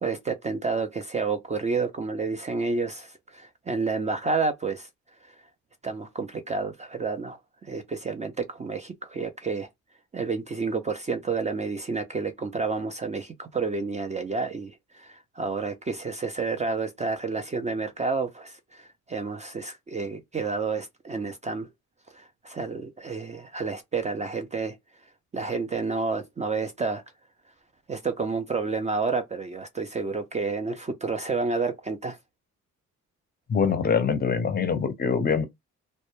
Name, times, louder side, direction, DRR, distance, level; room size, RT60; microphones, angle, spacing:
voice 1, 0.0-4.9 5.8-9.7 10.1-21.7 22.1-24.8 25.3-27.0 27.9-32.2, right 4 dB, 25° right, 0.4 m, -30 dB
voice 2, 33.5-35.4, left 6 dB, 30° left, 0.6 m, -24 dB
2.1 x 2.1 x 2.9 m
cardioid pair, 90°, 30 cm